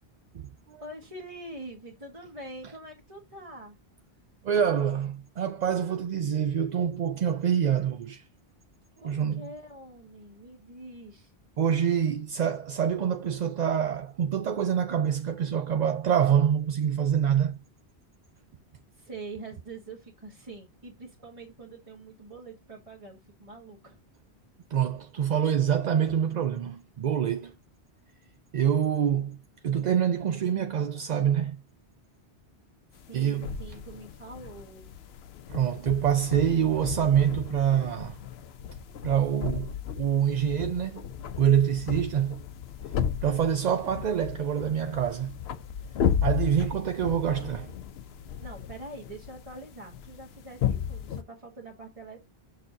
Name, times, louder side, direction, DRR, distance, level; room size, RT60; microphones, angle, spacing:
voice 1, 0.8-3.8 9.0-11.3 18.9-24.0 32.9-34.9 48.4-52.2, right 2 dB, 30° right, 1.4 m, -44 dB
voice 2, 4.4-8.2 9.0-9.4 11.6-17.5 24.7-27.5 28.5-29.4 29.6-31.6 33.1-33.5 35.5-38.2 39.0-41.1 41.4-42.4 43.2-45.3 46.2-47.7, right 8 dB, 55° right, 0.5 m, -26 dB
sound 1, 33.0-51.2, left 8 dB, 70° left, 0.9 m, -34 dB
6.5 x 6.0 x 2.6 m
omnidirectional pair, 1.1 m